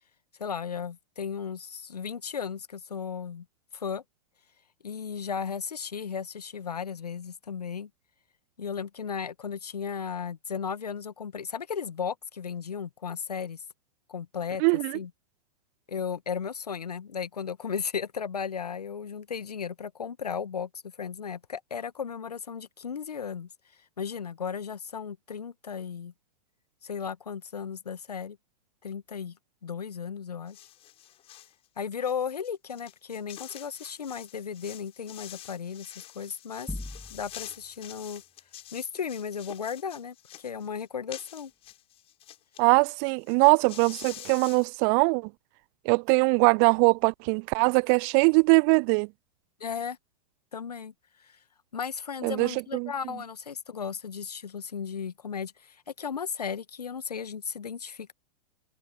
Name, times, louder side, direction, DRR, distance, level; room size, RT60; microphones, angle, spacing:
voice 1, 0.4-3.4 3.7-4.0 4.8-7.9 8.6-13.6 14.1-14.6 14.9-15.1 15.9-23.5 24.0-26.1 26.8-28.4 28.8-29.4 29.6-30.6 31.8-36.7 37.1-38.2 38.7-41.5 49.6-50.0 50.5-50.9 51.2-51.4 51.7-58.1, left 6 dB, 75° left, 1.3 m, -35 dB
voice 2, 14.6-15.0 42.6-45.3 45.9-49.1 52.2-52.9, right 40 dB or more, 30° right, 0.3 m, -22 dB
sound 1, 30.5-31.5 32.0-42.6 42.9-43.0 43.2-44.7, left 13 dB, 30° left, 6.9 m, -47 dB
sound 2, 36.7-37.6, left 1 dB, 5° left, 1.0 m, -38 dB
figure-of-eight pair, 105°, 20 cm